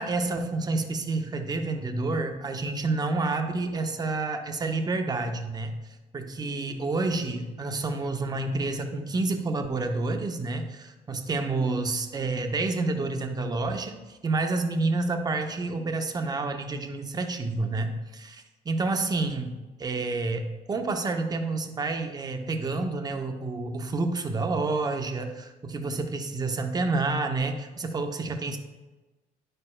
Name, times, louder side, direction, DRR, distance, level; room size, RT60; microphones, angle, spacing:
voice 1, 0.0-5.7 6.1-19.5 19.8-28.6, right 3 dB, 25° right, 6 dB, 0.7 m, -29 dB
9.7 x 6.6 x 2.2 m, 1.2 s
cardioid pair, 110°, 17 cm